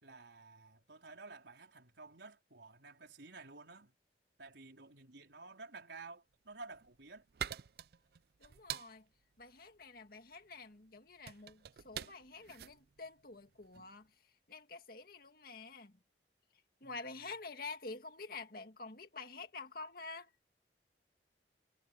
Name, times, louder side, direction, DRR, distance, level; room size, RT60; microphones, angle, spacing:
voice 1, 0.0-3.9 4.4-7.2 16.8-17.2, right 3 dB, 85° right, 4.3 m, -53 dB
sound 1, 6.5-13.9, right 9 dB, 60° right, 0.5 m, -47 dB
voice 2, 8.4-9.0 9.4-14.1 14.5-16.0 16.8-20.3, left 3 dB, 55° left, 2.1 m, -48 dB
head